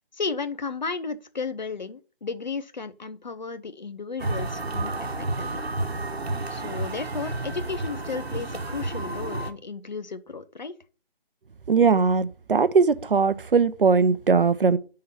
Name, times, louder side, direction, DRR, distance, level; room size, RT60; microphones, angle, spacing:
voice 1, 0.1-5.6 6.5-10.7, left 4 dB, 45° left, 0.6 m, -34 dB
sound 1, 4.2-9.5, right 2 dB, 85° right, 1.2 m, -31 dB
voice 2, 11.7-14.8, right 5 dB, 60° right, 0.6 m, -20 dB
5.5 x 3.8 x 5.8 m
figure-of-eight pair, 160°, 31 cm